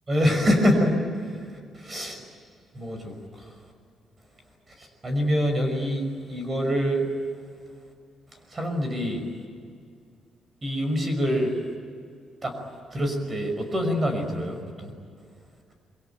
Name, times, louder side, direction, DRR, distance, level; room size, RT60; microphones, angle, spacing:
voice 1, 0.1-2.2 2.7-3.5 4.8-7.1 8.5-9.2 10.6-11.5 12.4-12.5 12.9-14.9, equal, 20° right, 5 dB, 5.7 m, -25 dB
27.5 x 24.0 x 9.2 m, 2.2 s
cardioid pair, 165°, 0 cm